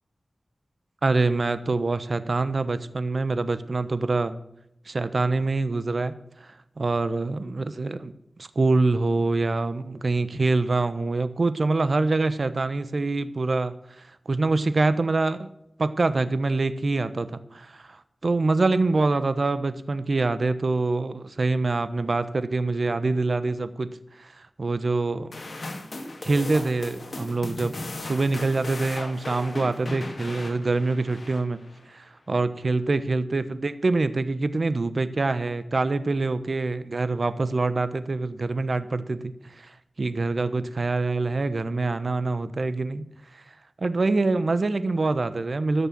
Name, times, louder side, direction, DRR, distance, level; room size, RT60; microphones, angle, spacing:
voice 1, 1.0-4.4 4.9-8.1 8.4-15.5 15.8-23.9 24.2-25.3 26.2-31.6 31.9-43.0 43.3-43.4 43.8-45.9, right 3 dB, 60° right, 13 dB, 1.0 m, -25 dB
sound 1, 25.3-31.9, left 2 dB, 60° left, 2.2 m, -37 dB
14.0 x 6.7 x 7.5 m, 0.79 s
cardioid pair, 45°, 0 cm